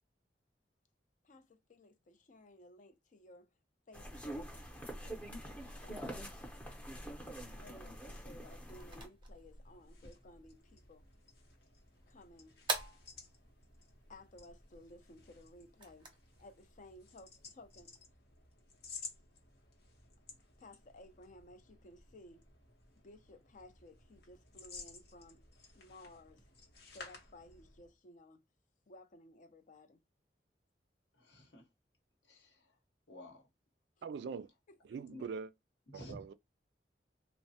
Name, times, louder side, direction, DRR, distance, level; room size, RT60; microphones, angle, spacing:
voice 1, 1.2-3.5 3.9-6.3 7.1-11.0 12.1-12.6 14.1-16.1 16.4-17.9 20.6-22.5 23.0-25.5 25.7-26.5 26.9-28.4 28.9-30.0 34.7-35.0, left 1 dB, 45° left, 0.5 m, -58 dB
sound 1, 3.9-9.1, right 1 dB, 10° left, 0.7 m, -45 dB
sound 2, 8.3-18.1, right 3 dB, 30° right, 0.6 m, -48 dB
sound 3, 9.1-28.0, left 4 dB, 65° left, 0.9 m, -55 dB
voice 2, 31.1-31.7 32.2-32.8 33.1-33.5 35.1-35.2 35.9-36.2, left 1 dB, 80° left, 1.0 m, -52 dB
voice 3, 34.0-34.5 34.9-35.5 35.9-36.3, right 5 dB, 70° right, 0.3 m, -42 dB
3.1 x 2.1 x 2.7 m
head